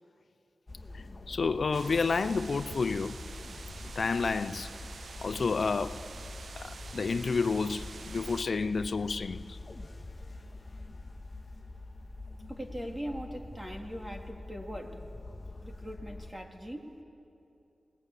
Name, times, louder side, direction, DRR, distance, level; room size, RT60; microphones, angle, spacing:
sound 1, 0.7-16.3, left 2 dB, 20° left, 2.8 m, -45 dB
voice 1, 0.9-3.2 4.0-4.7 5.2-6.1 6.6-9.6, left 4 dB, 55° left, 0.5 m, -30 dB
sound 2, 1.7-8.4, right 4 dB, 65° right, 0.5 m, -47 dB
voice 2, 12.5-15.1 15.6-17.0, equal, 15° right, 2.2 m, -41 dB
27.0 x 20.0 x 8.3 m
wide cardioid pair, 135°, 0 cm